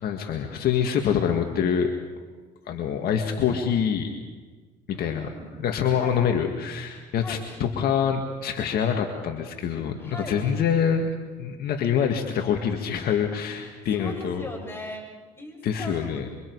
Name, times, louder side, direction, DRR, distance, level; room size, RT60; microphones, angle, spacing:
voice 1, 0.0-1.9 2.7-4.1 4.9-5.3 5.6-11.1 11.4-14.5 15.6-16.3, left 7 dB, 60° left, 4 dB, 1.9 m, -25 dB
voice 2, 4.9-5.6 6.0-6.2 7.1-7.5 10.0-10.5 13.3-13.4 13.9-15.1 15.3-16.3, left 1 dB, 15° left, 0 dB, 7.7 m, -39 dB
27.5 x 25.5 x 4.8 m, 1.4 s
supercardioid pair, 90°, 17 cm